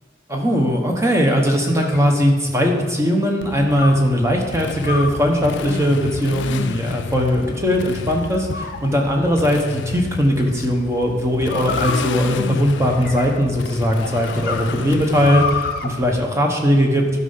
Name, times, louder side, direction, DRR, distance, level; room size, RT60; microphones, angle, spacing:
voice 1, 0.3-17.0, equal, 15° right, 1 dB, 1.1 m, -19 dB
sound 1, 0.9-2.8 3.8-4.1 4.8-5.3 6.0-6.6 7.2-7.8 8.5-9.3 10.4-10.7 11.5-13.5 14.0-15.9, left 4 dB, 50° left, 0.7 m, -30 dB
Motorcycle, 3.4-16.3, left 6 dB, 65° left, 0.3 m, -32 dB
12.0 x 5.4 x 5.7 m, 1.4 s
head